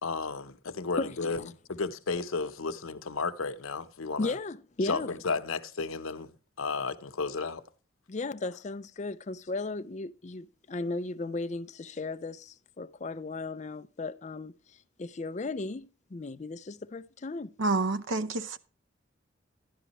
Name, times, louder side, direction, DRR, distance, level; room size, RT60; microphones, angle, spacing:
voice 1, 0.0-4.4 4.8-7.6, left 4 dB, 90° left, 0.8 m, -33 dB
voice 2, 4.2-5.1 8.1-14.6 15.0-17.5, left 3 dB, 35° left, 0.4 m, -35 dB
voice 3, 17.6-18.6, right 3 dB, 70° right, 0.7 m, -28 dB
11.0 x 11.0 x 3.0 m
head